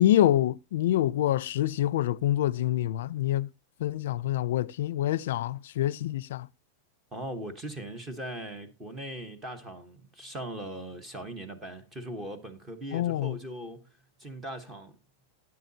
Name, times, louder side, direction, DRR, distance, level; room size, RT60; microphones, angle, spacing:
voice 1, 0.0-3.5 3.8-6.5 12.9-13.4, left 13 dB, 65° left, 0.5 m, -26 dB
voice 2, 7.1-15.0, right 1 dB, 10° right, 1.1 m, -40 dB
12.5 x 9.6 x 2.8 m
supercardioid pair, 175°, 0 cm